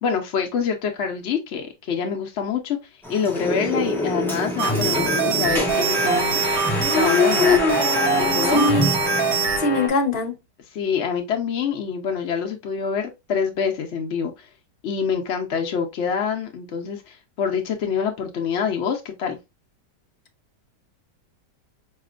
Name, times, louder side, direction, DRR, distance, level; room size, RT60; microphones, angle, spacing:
voice 1, 0.0-2.8 3.1-6.4 6.9-7.6 8.2-8.8 10.7-14.5 14.8-19.4, left 6 dB, 80° left, 0.6 m, -26 dB
sound 1, 3.0-9.9, left 2 dB, ahead, 0.8 m, -24 dB
sound 2, 4.6-9.6, right 5 dB, 65° right, 1.3 m, -24 dB
voice 2, 8.5-8.9 9.6-10.3, left 2 dB, 45° left, 1.0 m, -21 dB
4.9 x 2.9 x 2.4 m
omnidirectional pair, 1.9 m